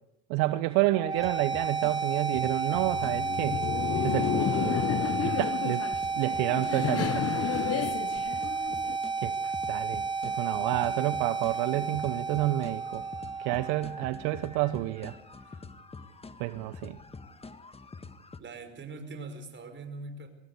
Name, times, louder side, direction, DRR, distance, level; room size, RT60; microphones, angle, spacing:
voice 1, 0.3-3.6 4.0-4.8 5.2-5.8 6.2-7.2 9.2-13.0 13.4-15.1 16.4-17.0, right 17 dB, 65° right, 13 dB, 1.1 m, -29 dB
sound 1, 0.9-14.9, right 4 dB, 10° right, 2.3 m, -32 dB
sound 2, 1.2-1.9 2.3-6.7 7.1-18.4, left 4 dB, 15° left, 1.6 m, -46 dB
Laughter, 2.7-9.0, left 10 dB, 40° left, 1.1 m, -31 dB
voice 2, 18.4-20.3, right 3 dB, 30° right, 8 dB, 5.3 m, -42 dB
24.5 x 18.0 x 8.2 m, 0.82 s
hypercardioid pair, 90°, 39 cm